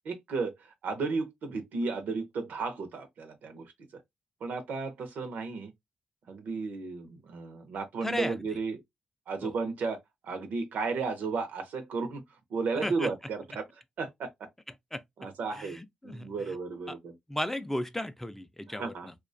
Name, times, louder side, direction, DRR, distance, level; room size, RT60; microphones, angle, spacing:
voice 1, 0.0-4.0 4.4-5.7 6.3-8.8 9.3-10.0 10.2-12.2 12.5-13.6 14.0-14.3 15.2-15.8 16.0-17.1 18.7-19.1, right 4 dB, 80° right, 0.5 m, -34 dB
voice 2, 8.0-8.4 9.4-9.5 12.8-13.1 14.9-15.0 15.6-16.6 16.9-17.0 17.3-19.1, left 1 dB, 10° left, 0.4 m, -35 dB
2.3 x 2.2 x 2.4 m
supercardioid pair, 50°, 3 cm